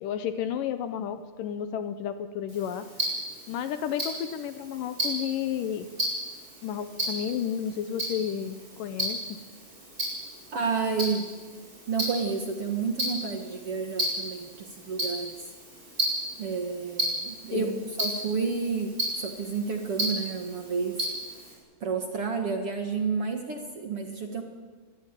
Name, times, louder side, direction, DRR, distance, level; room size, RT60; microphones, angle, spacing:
voice 1, 0.0-2.9 3.5-5.9 6.6-9.4 17.5-17.9, left 9 dB, 70° left, 10 dB, 2.3 m, -32 dB
Tick-tock, 2.5-21.5, right 1 dB, 20° right, 8.5 m, -34 dB
voice 2, 10.5-11.3 11.9-15.4 16.4-17.7 18.0-21.0 21.8-24.4, right 5 dB, 50° right, 4 dB, 1.9 m, -30 dB
24.5 x 20.0 x 9.1 m, 1.5 s
omnidirectional pair, 4.4 m